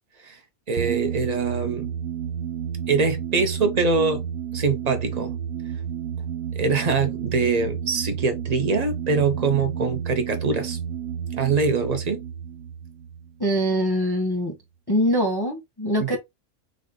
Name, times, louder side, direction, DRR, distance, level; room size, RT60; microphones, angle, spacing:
voice 1, 0.7-1.9 2.9-4.2 4.5-5.3 6.6-10.8 11.3-12.2 16.0-16.2, right 4 dB, 40° right, 0.7 m, -23 dB
sound 1, 0.8-14.0, right 9 dB, 85° right, 1.2 m, -31 dB
voice 2, 13.4-14.6 14.9-16.2, equal, 20° left, 0.8 m, -23 dB
4.0 x 2.4 x 3.6 m
omnidirectional pair, 1.4 m